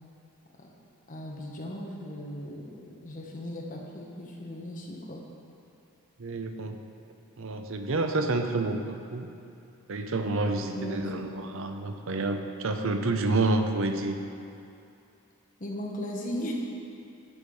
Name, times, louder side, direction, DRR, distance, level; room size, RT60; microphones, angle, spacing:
voice 1, 1.1-2.8 3.0-5.2 10.7-11.0 15.6-16.5, equal, 35° left, -1 dB, 1.2 m, -37 dB
voice 2, 6.2-6.8 7.4-9.3 9.9-14.2, right 2 dB, 60° right, 6 dB, 0.6 m, -29 dB
11.0 x 5.1 x 5.4 m, 2.7 s
head